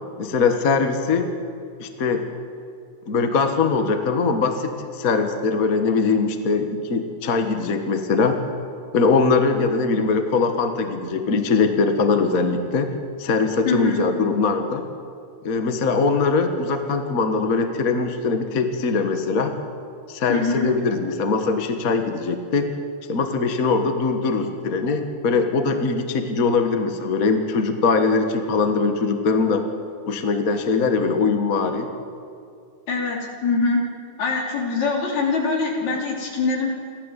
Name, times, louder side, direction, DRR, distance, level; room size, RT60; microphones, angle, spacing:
voice 1, 0.2-1.3 1.8-2.2 3.1-8.4 8.9-12.9 13.2-14.9 15.4-19.5 20.1-22.7 23.1-29.6 30.1-31.9, left 4 dB, 40° left, 7 dB, 1.3 m, -21 dB
voice 2, 13.7-14.0 20.3-20.7 32.9-33.8 34.2-36.7, left 4 dB, 70° left, 0 dB, 4.6 m, -23 dB
29.0 x 13.0 x 8.2 m, 2.4 s
omnidirectional pair, 3.3 m